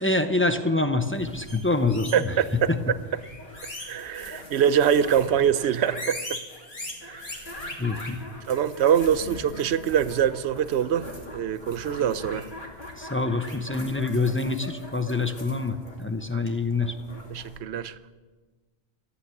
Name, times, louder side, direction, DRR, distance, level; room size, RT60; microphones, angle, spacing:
voice 1, 0.0-2.4 2.7-2.8 7.8-8.2 13.0-16.9, left 3 dB, 15° left, 0.6 m, -26 dB
sound 1, 1.1-17.6, left 1 dB, 45° left, 2.7 m, -41 dB
voice 2, 2.1-2.7 3.8-6.2 7.0-7.3 8.5-12.5 16.3-16.4 17.3-17.9, right 9 dB, 70° right, 0.9 m, -24 dB
14.5 x 9.4 x 8.4 m
omnidirectional pair, 1.2 m